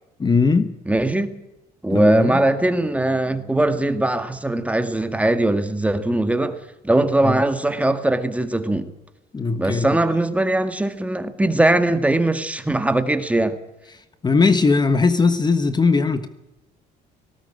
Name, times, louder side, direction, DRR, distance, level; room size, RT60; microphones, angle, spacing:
voice 1, 0.2-0.7 1.9-2.4 7.2-7.4 9.3-10.0 14.2-16.3, left 4 dB, 25° left, 1.4 m, -19 dB
voice 2, 0.9-1.3 1.8-6.6 6.8-8.9 9.5-13.5, right 1 dB, 10° right, 1.9 m, -20 dB
19.0 x 17.5 x 8.9 m
cardioid pair, 110°, 17 cm